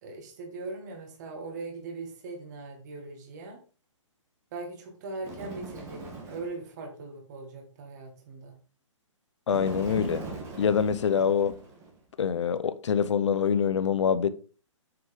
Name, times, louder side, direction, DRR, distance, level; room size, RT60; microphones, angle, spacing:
voice 1, 0.0-3.6 4.5-8.5, right 3 dB, 35° right, 2.0 m, -40 dB
Bird, 5.2-6.6 9.5-12.0, right 3 dB, 15° right, 1.7 m, -40 dB
voice 2, 9.5-10.2 10.6-11.5 12.2-14.3, left 7 dB, 65° left, 0.8 m, -25 dB
7.0 x 6.5 x 3.7 m
hypercardioid pair, 160°, 16 cm